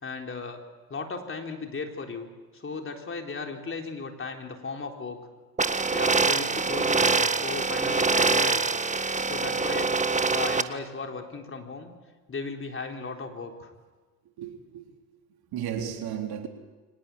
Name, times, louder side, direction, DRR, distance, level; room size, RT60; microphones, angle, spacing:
voice 1, 0.0-0.6 0.9-2.3 2.5-5.2 5.9-8.7 9.2-9.9 10.3-11.9 12.3-13.7, left 4 dB, 30° left, 3 dB, 4.0 m, -36 dB
sound 1, 5.6-10.6, right 4 dB, 15° right, 1.5 m, -24 dB
voice 2, 14.4-14.8 15.5-16.5, right 9 dB, 55° right, 3 dB, 3.8 m, -33 dB
24.0 x 19.5 x 8.4 m, 1.3 s
hypercardioid pair, 65°, 44 cm